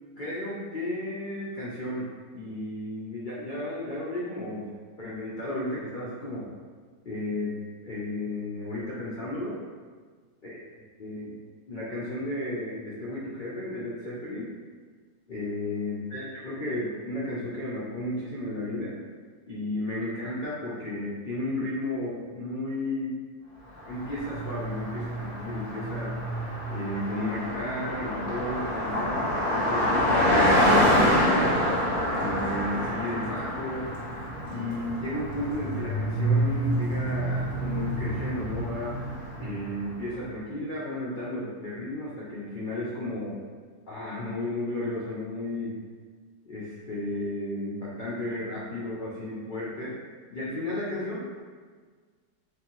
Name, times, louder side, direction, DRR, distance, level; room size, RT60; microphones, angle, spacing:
voice 1, 0.2-2.1 2.3-4.7 5.0-6.5 7.0-7.5 7.8-9.6 10.4-10.6 11.0-11.4 11.7-14.5 15.3-19.0 19.4-23.2 23.9-26.2 26.7-31.6 32.1-33.9 34.5-39.0 39.4-43.4 43.9-45.8 46.5-50.0 50.3-51.5, left 1 dB, 90° left, -8 dB, 0.4 m, -33 dB
Car passing by, 23.8-39.9, equal, 50° right, 1.5 m, -27 dB
4.5 x 2.7 x 3.0 m, 1.5 s
omnidirectional pair, 1.9 m